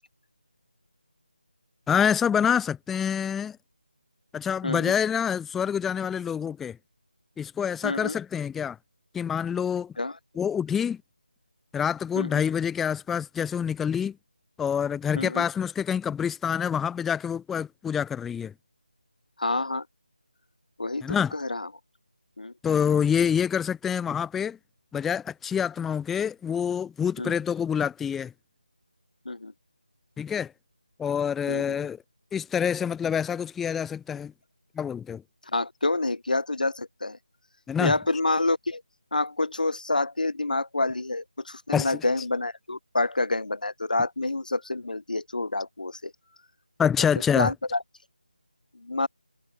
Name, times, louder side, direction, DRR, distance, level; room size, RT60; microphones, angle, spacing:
voice 1, 1.9-3.6 4.3-6.8 7.4-8.8 9.1-9.9 10.4-11.0 11.7-14.2 14.6-18.5 21.0-21.3 22.6-24.6 24.9-28.3 30.2-30.5 31.0-32.0 32.3-34.3 34.8-35.2 37.7-37.9 41.7-42.0 46.8-47.5, left 7 dB, 5° left, 0.4 m, -26 dB
voice 2, 4.6-4.9 7.8-8.2 10.0-10.2 12.2-12.4 15.1-15.4 19.4-19.8 20.8-21.7 22.4-22.5 27.2-27.4 29.2-29.5 31.5-31.8 35.5-37.2 37.8-38.8 39.1-46.1 47.4-47.8 48.7-49.1, left 2 dB, 70° left, 1.3 m, -28 dB
figure-of-eight pair, 165°, 5 cm